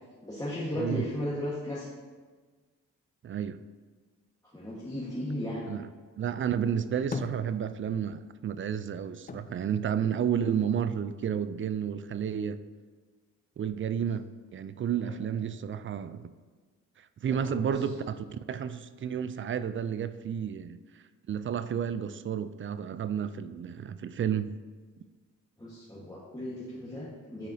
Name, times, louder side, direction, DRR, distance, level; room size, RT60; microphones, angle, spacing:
voice 1, 0.2-1.9 4.5-5.6 15.0-15.1 17.5-17.6 25.6-27.5, left 1 dB, 10° left, -8 dB, 1.4 m, -35 dB
voice 2, 3.2-3.6 5.7-5.9 6.2-12.6 13.6-14.3 14.5-16.3 17.0-20.8 21.3-24.6, right 8 dB, 35° right, 13 dB, 0.4 m, -31 dB
sound 1, 6.7-8.2 8.5-10.8 11.2-12.1, left 4 dB, 25° left, 0.5 m, -42 dB
9.7 x 4.2 x 2.7 m, 1.4 s
cardioid pair, 60°, 34 cm